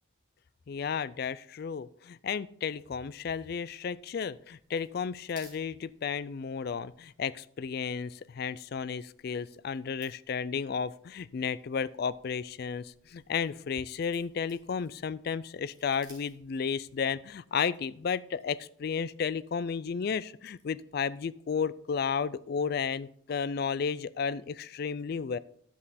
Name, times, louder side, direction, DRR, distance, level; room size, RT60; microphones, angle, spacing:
voice 1, 0.7-25.4, left 6 dB, 50° left, 18 dB, 0.3 m, -33 dB
sound 1, 2.8-17.1, right 1 dB, 20° right, 2.8 m, -62 dB
10.5 x 7.5 x 4.1 m, 0.65 s
head